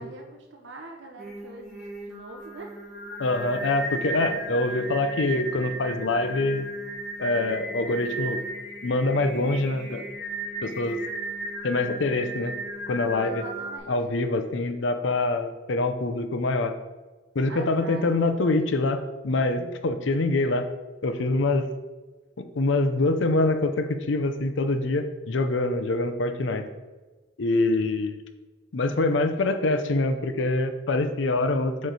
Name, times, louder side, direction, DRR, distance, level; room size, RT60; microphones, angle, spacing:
voice 1, 0.0-2.8 13.2-13.9 17.5-18.2, right 2 dB, 70° right, 2 dB, 0.7 m, -43 dB
Singing, 1.2-13.8, right 1 dB, ahead, 1.2 m, -35 dB
voice 2, 3.2-6.7 7.2-8.4 8.8-10.0 10.6-11.0 11.6-12.5 12.9-13.4 13.9-16.7 17.3-20.7 21.0-21.7 22.4-26.6 27.4-28.2 28.7-31.9, left 2 dB, 75° left, 9 dB, 0.6 m, -25 dB
7.8 x 3.2 x 4.1 m, 1.3 s
head